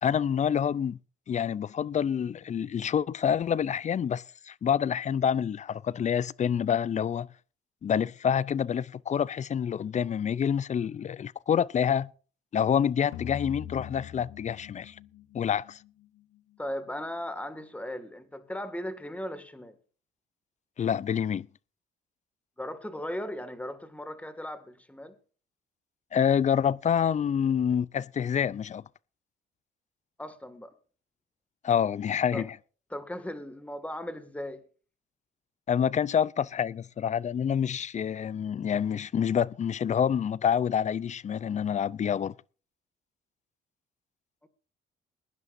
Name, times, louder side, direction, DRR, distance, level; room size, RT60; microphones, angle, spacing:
voice 1, 0.0-1.0 1.3-7.3 7.8-12.1 12.5-15.0 15.3-15.8 20.8-21.5 26.1-28.8 31.6-32.5 35.7-42.3, left 8 dB, 35° left, 0.5 m, -27 dB
sound 1, 13.1-16.4, left 10 dB, 85° left, 1.1 m, -42 dB
voice 2, 16.6-19.8 22.6-25.2 30.2-30.7 32.3-32.5 32.9-34.6, left 1 dB, 5° left, 2.1 m, -37 dB
22.0 x 10.5 x 2.6 m
cardioid pair, 80°, 20 cm